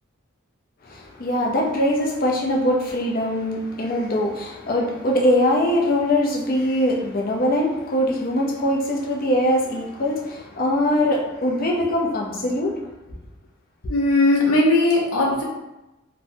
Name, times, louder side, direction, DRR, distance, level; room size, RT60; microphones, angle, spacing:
voice 1, 0.9-12.8, left 1 dB, 40° left, -1 dB, 0.4 m, -22 dB
voice 2, 13.9-15.4, left 2 dB, 80° left, -2 dB, 0.7 m, -18 dB
2.9 x 2.1 x 2.6 m, 0.98 s
head